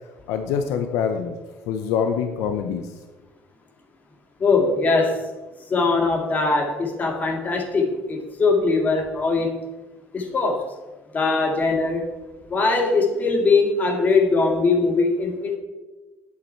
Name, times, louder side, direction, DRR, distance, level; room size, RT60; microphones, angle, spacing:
voice 1, 0.3-1.4 1.7-2.8, left 7 dB, 80° left, 6 dB, 0.8 m, -24 dB
voice 2, 4.4-5.2 5.7-9.5 10.1-10.7 11.1-12.1 12.5-15.6, left 3 dB, 30° left, 3 dB, 2.1 m, -21 dB
9.7 x 8.5 x 4.6 m, 1.2 s
cardioid pair, 115°, 5 cm